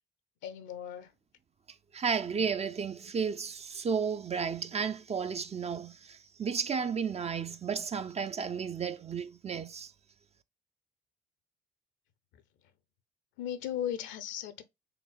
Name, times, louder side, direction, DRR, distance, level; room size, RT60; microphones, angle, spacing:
voice 1, 0.4-1.1 13.4-14.6, left 10 dB, 65° left, 0.8 m, -36 dB
voice 2, 1.9-9.9, right 6 dB, 30° right, 0.6 m, -33 dB
5.1 x 3.5 x 2.4 m
figure-of-eight pair, 45°, 21 cm